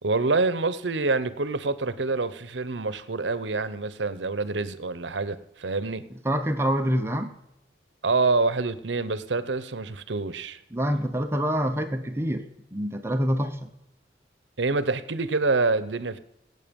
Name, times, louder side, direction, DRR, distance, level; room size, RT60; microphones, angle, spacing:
voice 1, 0.0-6.1 8.0-10.6 14.6-16.2, right 3 dB, 85° right, 15 dB, 0.9 m, -26 dB
voice 2, 6.2-7.3 10.7-13.7, equal, 15° right, 7 dB, 0.8 m, -26 dB
18.0 x 8.3 x 5.3 m, 0.84 s
head